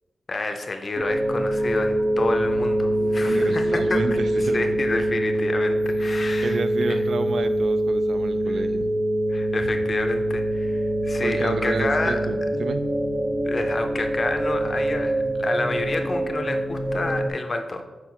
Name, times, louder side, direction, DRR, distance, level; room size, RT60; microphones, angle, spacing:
voice 1, 0.3-6.6 6.9-7.0 8.5-8.6 9.3-12.2 13.4-17.8, left 2 dB, 40° left, 5 dB, 0.5 m, -29 dB
sound 1, 1.0-17.3, right 1 dB, 30° right, 0.7 m, -24 dB
voice 2, 3.2-4.8 6.1-8.9 11.2-13.0, right 3 dB, 70° right, 10 dB, 0.4 m, -30 dB
4.7 x 4.6 x 5.7 m, 1.2 s
wide cardioid pair, 120°, 0 cm